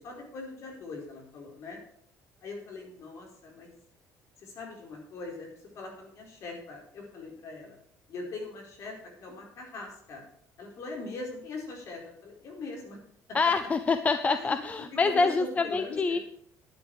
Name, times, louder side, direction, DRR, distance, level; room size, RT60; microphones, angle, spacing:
voice 1, 0.0-1.8 2.4-3.7 4.4-5.5 5.7-7.8 8.1-10.2 10.6-13.0 14.4-14.6 15.0-16.2, left 3 dB, 55° left, 0 dB, 4.7 m, -41 dB
voice 2, 13.3-16.2, left 4 dB, 25° left, 10 dB, 0.6 m, -26 dB
11.5 x 10.0 x 4.9 m, 0.66 s
cardioid pair, 135°, 6 cm